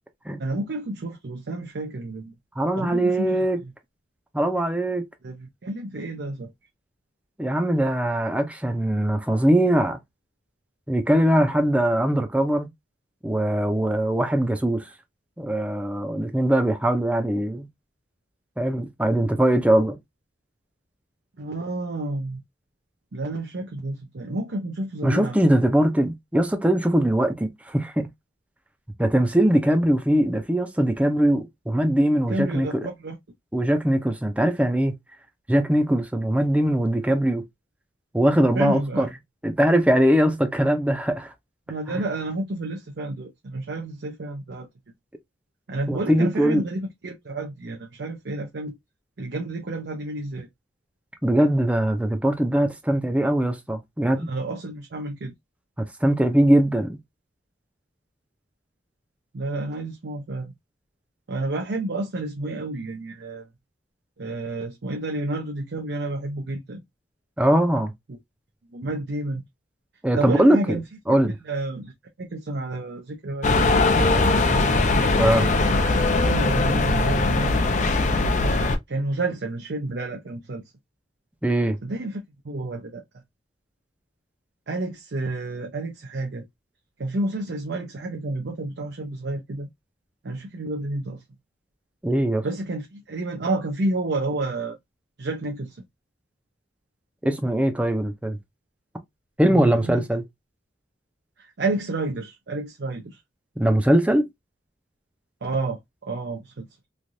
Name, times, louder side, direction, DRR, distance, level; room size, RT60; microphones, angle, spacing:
voice 1, 0.4-2.3 2.8-3.7 5.2-6.5 21.4-22.4 23.1-25.6 32.3-33.2 38.5-39.1 41.7-44.7 45.7-48.7 49.2-50.5 54.3-55.3 59.3-60.5 61.3-63.5 64.2-66.8 68.1-68.2 68.7-69.4 70.1-71.9 72.2-74.1 74.4-74.7 76.2-77.5 78.9-80.6 81.8-83.0 84.7-86.5 87.0-89.7 90.2-91.2 92.4-94.8 95.2-95.8 99.5-100.1 101.4-103.2 105.4-106.7, right 2 dB, 75° right, 0.6 m, -30 dB
voice 2, 2.6-3.6 4.3-5.0 7.4-10.0 10.9-12.7 13.2-14.9 15.4-17.7 18.6-20.0 25.0-28.1 29.0-32.7 33.5-34.9 35.5-37.4 38.1-39.1 39.4-41.3 45.9-46.6 51.2-54.3 55.8-57.0 67.4-67.9 70.0-70.8 71.1-71.4 75.2-75.5 81.4-81.8 92.0-92.4 97.2-98.4 99.4-100.2 103.6-104.3, right 1 dB, 10° right, 0.5 m, -21 dB
sound 1, 73.4-78.8, left 3 dB, 45° left, 0.5 m, -20 dB
3.2 x 2.4 x 2.6 m
head